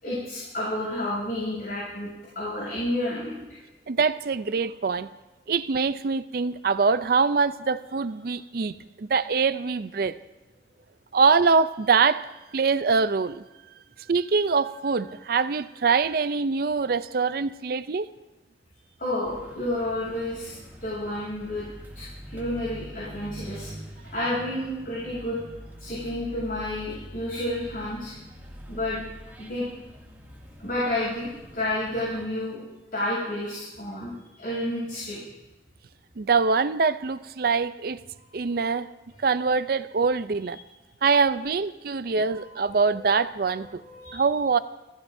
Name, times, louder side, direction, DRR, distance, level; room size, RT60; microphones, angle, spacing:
voice 1, 0.0-2.1 2.3-3.6 19.0-20.5 20.8-21.6 21.9-25.4 25.8-28.1 28.7-29.1 29.4-29.7 30.6-32.6 32.9-35.2 38.7-38.8 42.3-43.1 43.8-44.3, left 1 dB, 50° left, -6 dB, 7.3 m, -31 dB
voice 2, 3.9-5.1 5.5-10.2 11.1-12.3 12.5-13.4 14.1-18.1 36.2-38.0 38.3-38.9 39.2-40.6 41.0-43.8 44.1-44.6, right 5 dB, 55° right, 13 dB, 0.5 m, -24 dB
sound 1, 19.2-32.3, equal, 10° right, 2.3 m, -44 dB
30.0 x 15.5 x 2.7 m, 1.0 s
head